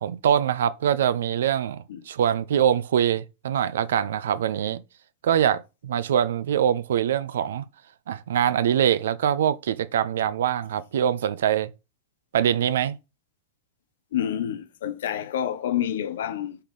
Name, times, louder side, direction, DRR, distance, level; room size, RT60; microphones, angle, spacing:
voice 1, 0.0-4.8 5.2-7.6 8.1-11.7 12.3-12.9, right 9 dB, 60° right, 0.4 m, -23 dB
voice 2, 14.1-16.6, left 10 dB, 60° left, 0.7 m, -28 dB
5.6 x 3.7 x 5.1 m
figure-of-eight pair, 90°, 0 cm